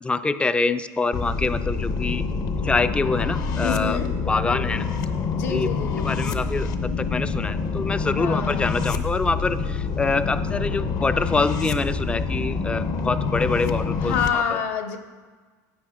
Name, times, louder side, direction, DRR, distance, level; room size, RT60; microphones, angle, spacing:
voice 1, 0.0-2.2 2.6-4.0 4.3-4.9 5.1-5.7 6.0-14.4, left 3 dB, 10° left, 12 dB, 0.4 m, -25 dB
sound 1, 1.1-14.3, left 5 dB, 45° left, 0.8 m, -26 dB
voice 2, 3.6-4.1 5.3-6.1 8.2-8.7 14.0-15.0, left 7 dB, 80° left, 3 dB, 1.2 m, -27 dB
16.0 x 8.4 x 2.5 m, 1.4 s
supercardioid pair, 105°, 9 cm